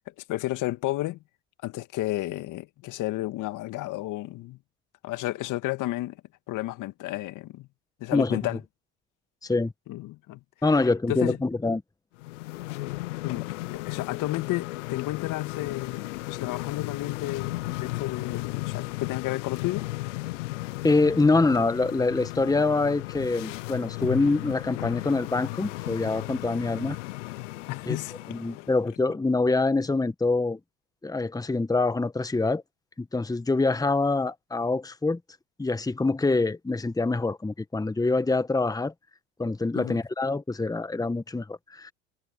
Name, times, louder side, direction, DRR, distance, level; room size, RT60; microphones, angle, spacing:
voice 1, 0.3-1.2 1.6-4.6 5.0-6.2 6.5-7.7 8.0-8.6 9.9-10.4 10.8-11.4 13.2-19.9 27.7-28.7 39.7-40.0, left 17 dB, 55° left, 2.1 m, -32 dB
voice 2, 9.4-9.7 10.6-11.8 20.8-27.0 27.9-28.0 28.3-30.6 31.0-32.6 33.0-35.2 35.6-38.9 39.4-41.9, left 3 dB, 10° left, 1.5 m, -25 dB
sound 1, 12.2-28.8, left 20 dB, 75° left, 0.9 m, -35 dB
hypercardioid pair, 70°, 36 cm